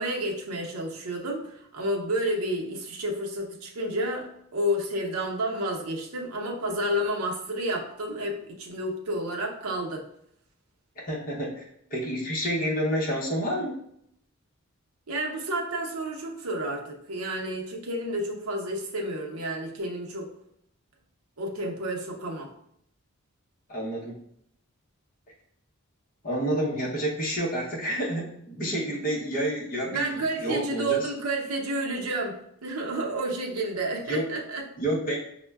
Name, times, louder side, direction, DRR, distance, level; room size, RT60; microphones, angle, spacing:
voice 1, 0.0-10.0 15.1-20.3 21.4-22.5 29.9-34.7, right 1 dB, 80° right, 0 dB, 0.7 m, -30 dB
voice 2, 11.0-11.6 11.9-13.8 23.7-24.2 26.2-31.1 34.1-34.2 34.8-35.2, right 1 dB, 40° left, -3 dB, 0.8 m, -29 dB
5.2 x 2.1 x 2.3 m, 0.72 s
head